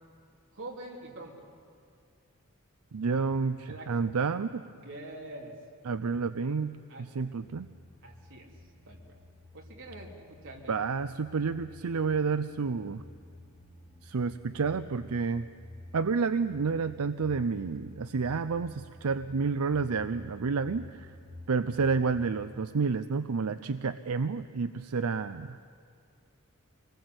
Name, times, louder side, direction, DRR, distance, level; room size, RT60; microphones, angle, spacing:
voice 1, 0.5-1.5 3.1-3.2 3.7-3.9 4.8-5.6 6.9-7.1 8.0-8.5 8.9-9.1 9.5-10.8, right 2 dB, 60° right, -1 dB, 3.5 m, -45 dB
voice 2, 2.9-4.6 5.9-7.7 10.7-13.0 14.0-15.5 15.9-21.1 21.5-25.6, right 5 dB, 85° right, 11 dB, 0.5 m, -30 dB
sound 1, 7.4-22.6, left 1 dB, 10° left, 4.6 m, -51 dB
25.5 x 19.5 x 7.9 m, 2.2 s
head